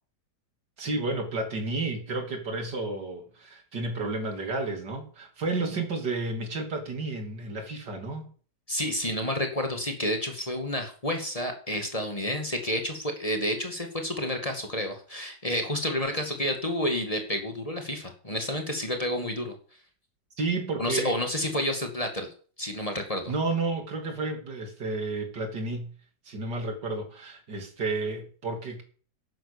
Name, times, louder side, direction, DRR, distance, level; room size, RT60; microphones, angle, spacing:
voice 1, 0.8-8.3 20.4-21.2 23.3-26.0 26.3-28.8, right 3 dB, 85° right, 5 dB, 3.6 m, -31 dB
voice 2, 8.7-19.5 20.8-22.3 22.6-23.3, left 1 dB, 20° left, 5 dB, 2.3 m, -30 dB
11.5 x 10.0 x 7.0 m, 0.42 s
omnidirectional pair, 1.8 m